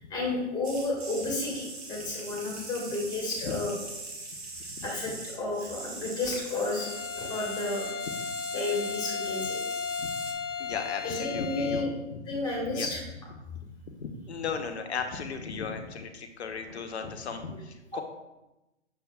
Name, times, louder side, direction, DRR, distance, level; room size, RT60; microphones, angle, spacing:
voice 1, 0.0-3.7 4.8-7.9 8.5-9.6 11.0-11.9 12.3-13.0 17.9-18.0, left 2 dB, 10° left, -3 dB, 1.7 m, -32 dB
sound 1, 0.6-10.3, right 3 dB, 60° right, 1.8 m, -42 dB
Bowed string instrument, 6.7-12.0, left 6 dB, 85° left, 0.6 m, -35 dB
voice 2, 10.6-12.2 12.7-12.9 13.9-18.0, left 5 dB, 65° left, 6 dB, 0.9 m, -36 dB
7.0 x 6.8 x 2.4 m, 0.99 s
figure-of-eight pair, 135°, 36 cm